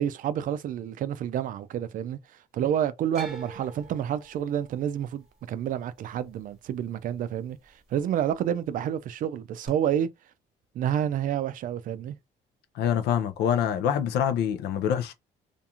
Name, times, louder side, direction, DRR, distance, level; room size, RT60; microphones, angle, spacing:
voice 1, 0.0-2.2 2.5-10.1 10.7-12.2, right 10 dB, 55° right, 0.4 m, -29 dB
sound 1, 3.1-7.3 7.6-8.3 9.7-9.8, right 2 dB, 5° right, 1.1 m, -45 dB
voice 2, 12.8-15.1, left 9 dB, 80° left, 0.5 m, -25 dB
2.5 x 2.3 x 2.8 m
cardioid pair, 110°, 17 cm